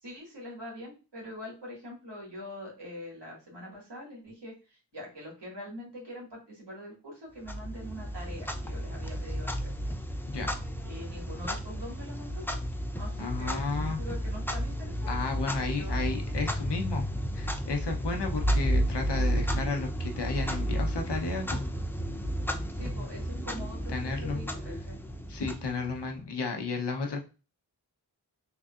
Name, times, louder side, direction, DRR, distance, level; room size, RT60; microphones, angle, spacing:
voice 1, 0.0-9.7 10.8-12.5 13.0-15.2 15.7-16.2 22.7-25.0, equal, 85° right, -2 dB, 2.0 m, -44 dB
Clock, 7.4-26.2, equal, 5° left, 0.5 m, -32 dB
voice 2, 13.2-14.0 15.1-17.0 17.3-21.6 23.9-24.4 25.3-27.2, left 4 dB, 80° left, 3 dB, 0.9 m, -33 dB
3.8 x 3.3 x 2.4 m, 0.32 s
cardioid pair, 45°, 41 cm